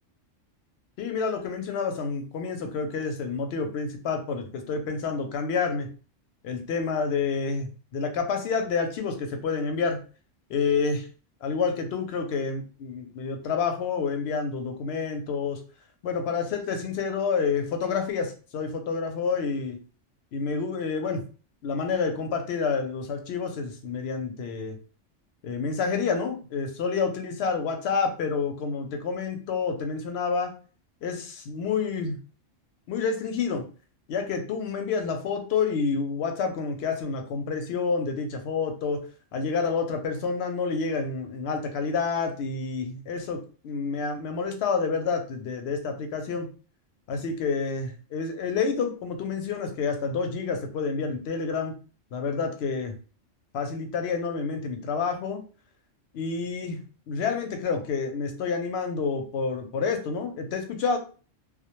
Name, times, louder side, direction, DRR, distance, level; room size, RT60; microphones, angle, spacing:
voice 1, 1.0-5.9 6.4-10.0 10.5-11.1 11.4-15.6 16.0-19.8 20.3-21.2 21.6-24.8 25.4-30.5 31.0-32.2 32.9-33.7 34.1-39.0 39.3-46.5 47.1-51.7 52.1-52.9 53.5-55.4 56.1-56.8 57.1-61.0, left 5 dB, 65° left, 6 dB, 0.8 m, -28 dB
2.2 x 2.1 x 2.9 m, 0.36 s
omnidirectional pair, 1.3 m